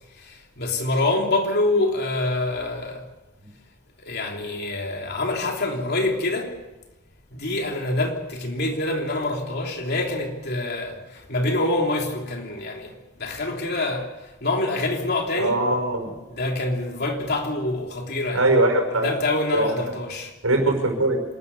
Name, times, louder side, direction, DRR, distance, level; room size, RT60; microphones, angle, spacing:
voice 1, 0.1-3.1 4.0-6.6 7.3-15.6 16.3-18.4 18.9-20.3, left 2 dB, 50° left, 3.3 m, -26 dB
voice 2, 15.4-16.1 18.3-19.1 19.5-19.7 20.4-21.2, right 2 dB, 80° right, 5.6 m, -21 dB
27.0 x 13.5 x 8.2 m
head